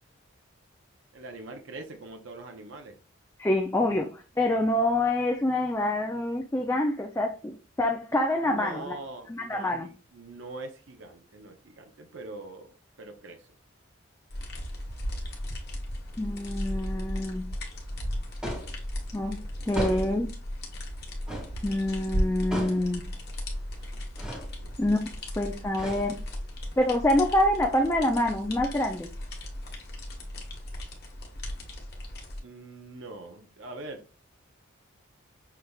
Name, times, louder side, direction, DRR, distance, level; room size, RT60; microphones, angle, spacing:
voice 1, 1.1-3.0 8.4-13.5 23.7-24.0 24.6-24.7 32.4-34.0, right 2 dB, 65° right, 5 dB, 0.7 m, -43 dB
voice 2, 3.4-9.0 9.3-9.9 16.2-17.5 19.1-19.4 19.7-20.3 21.6-23.0 24.8-25.0 25.4-26.2 26.8-29.1, left 1 dB, 10° left, 2 dB, 0.4 m, -26 dB
sound 1, 14.3-32.4, equal, 50° left, 1.2 m, -36 dB
sound 2, 18.4-18.8 19.7-20.2 21.3-21.6 22.5-22.9 24.2-24.5 25.7-26.4, equal, 5° right, 1.9 m, -35 dB
5.8 x 3.4 x 2.3 m, 0.34 s
head